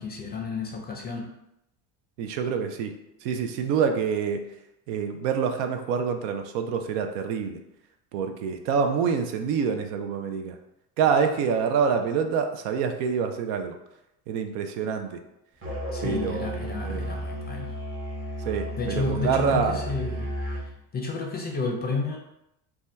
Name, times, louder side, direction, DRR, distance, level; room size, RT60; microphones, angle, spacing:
voice 1, 0.0-1.3 15.9-17.7 18.8-22.2, left 3 dB, 20° left, 1 dB, 0.5 m, -31 dB
voice 2, 2.2-2.9 3.2-4.5 4.9-7.6 8.1-10.6 11.0-13.8 14.3-15.2 16.0-17.1 18.5-19.8, right 6 dB, 80° right, 6 dB, 0.6 m, -26 dB
Musical instrument, 15.6-20.7, equal, 30° right, 0.8 m, -33 dB
2.7 x 2.3 x 3.3 m, 0.83 s
supercardioid pair, 100°, 47 cm